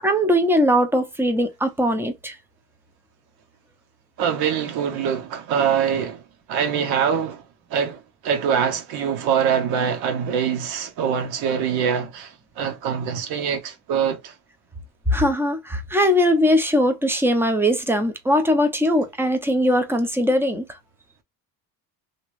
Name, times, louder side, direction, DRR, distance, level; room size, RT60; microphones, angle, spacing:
voice 1, 0.0-2.4 15.1-20.7, equal, 5° right, 0.6 m, -20 dB
voice 2, 4.2-7.4 7.7-14.3, right 7 dB, 75° right, 1.2 m, -24 dB
2.9 x 2.5 x 3.1 m
cardioid pair, 120°, 37 cm